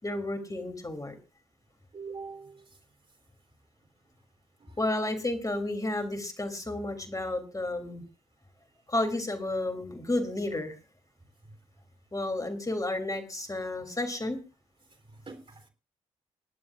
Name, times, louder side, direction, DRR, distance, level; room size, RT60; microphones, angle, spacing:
voice 1, 0.0-1.1 4.8-8.0 8.9-10.8 12.1-14.4, left 2 dB, 20° left, 3.3 m, -31 dB
voice 2, 1.9-2.7 4.6-4.8 11.5-11.6 15.1-15.7, right 4 dB, 35° right, 3.6 m, -44 dB
28.0 x 11.0 x 2.5 m
figure-of-eight pair, 40°, 16 cm